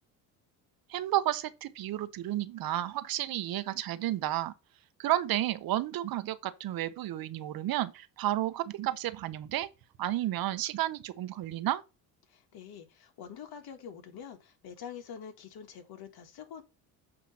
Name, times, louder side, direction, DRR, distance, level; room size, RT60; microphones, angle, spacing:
voice 1, 0.9-4.5 5.0-9.7 10.0-11.8, right 13 dB, 60° right, 0.9 m, -32 dB
voice 2, 12.3-16.6, left 8 dB, 60° left, 1.7 m, -46 dB
8.7 x 3.1 x 5.5 m
supercardioid pair, 85°, 41 cm